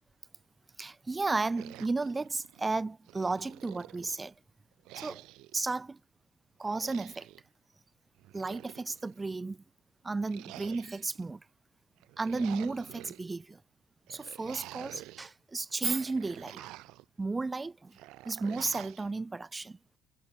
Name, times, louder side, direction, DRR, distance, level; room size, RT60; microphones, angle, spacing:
voice 1, 0.8-4.3 4.9-5.2 5.5-6.0 6.6-7.3 8.3-9.6 10.0-11.4 12.2-13.6 14.1-16.7 17.2-18.0 18.2-19.8, right 3 dB, 20° right, 0.5 m, -33 dB
sound 1, 1.5-2.7 3.1-4.3 4.8-5.6 6.6-7.4 8.2-9.2 10.2-11.2 12.0-13.2 14.1-15.3 15.7-17.0 17.9-19.1, right 18 dB, 70° right, 4.2 m, -49 dB
hypercardioid pair, 65°, 0 cm